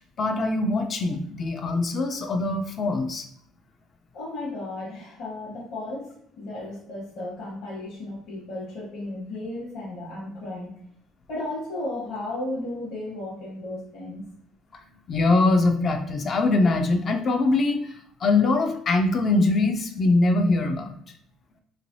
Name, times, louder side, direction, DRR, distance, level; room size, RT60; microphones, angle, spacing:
voice 1, 0.2-3.2 15.1-17.8 18.2-21.0, left 3 dB, 30° left, 5 dB, 0.3 m, -22 dB
voice 2, 4.1-10.7 11.3-14.2, left 2 dB, 55° left, -7 dB, 1.1 m, -34 dB
3.2 x 2.9 x 2.6 m, 0.68 s
cardioid pair, 155°, 0 cm